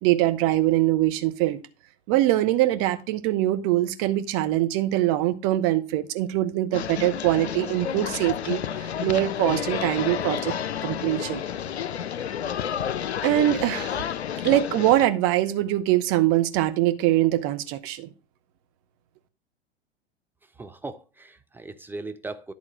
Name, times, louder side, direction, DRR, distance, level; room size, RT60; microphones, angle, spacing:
voice 1, 0.0-1.6 2.1-10.5 10.8-11.4 13.2-14.0 14.4-18.1, right 14 dB, 40° right, 1.0 m, -23 dB
sound 1, 6.7-15.1, left 9 dB, 75° left, 0.6 m, -30 dB
voice 2, 20.6-22.5, right 3 dB, 5° right, 0.5 m, -38 dB
11.0 x 3.7 x 6.1 m
figure-of-eight pair, 90°, 32 cm